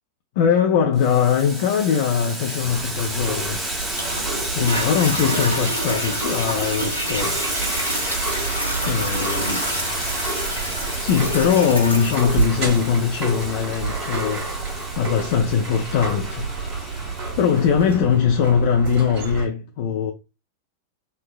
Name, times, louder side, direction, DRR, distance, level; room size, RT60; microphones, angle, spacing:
voice 1, 0.4-3.6 4.5-7.5 8.9-9.6 11.0-16.5 17.0-20.1, left 7 dB, 50° left, 0.3 m, -21 dB
Boiling, 1.0-17.7, right 1 dB, 10° right, 0.7 m, -32 dB
sound 1, 2.6-19.5, right 4 dB, 50° right, 1.3 m, -30 dB
Toilet flush, 3.9-16.9 17.5-17.6, equal, 90° left, 0.7 m, -29 dB
3.2 x 2.1 x 2.4 m
figure-of-eight pair, 90°, 0 cm